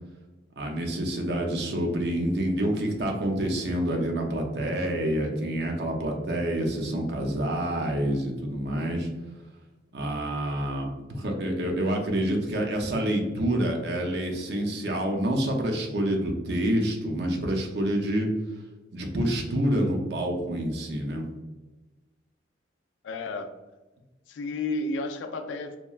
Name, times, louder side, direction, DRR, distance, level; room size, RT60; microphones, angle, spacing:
voice 1, 0.6-9.1 9.9-18.3 18.9-21.2, right 1 dB, 60° right, 1 dB, 0.5 m, -27 dB
voice 2, 23.0-23.6 24.3-25.8, left 2 dB, 90° left, 7 dB, 0.3 m, -32 dB
2.9 x 2.3 x 2.3 m, 1.2 s
head